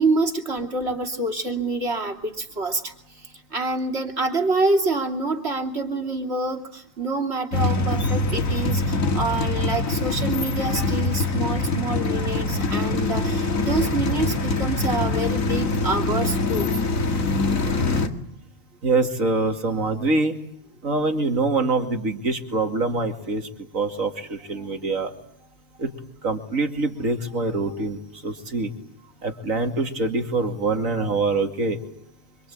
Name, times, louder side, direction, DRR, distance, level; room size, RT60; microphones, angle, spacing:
voice 1, 0.0-16.7 17.9-18.0 24.6-24.7, right 2 dB, 50° right, 2 dB, 3.1 m, -27 dB
sound 1, 7.5-18.1, left 3 dB, 80° left, 2.4 m, -24 dB
voice 2, 18.8-20.3 20.8-23.5 23.7-25.1 25.8-25.9 26.2-28.7 29.2-31.8, right 3 dB, 75° right, 6 dB, 2.9 m, -24 dB
25.5 x 25.0 x 8.7 m, 0.71 s
omnidirectional pair, 1.4 m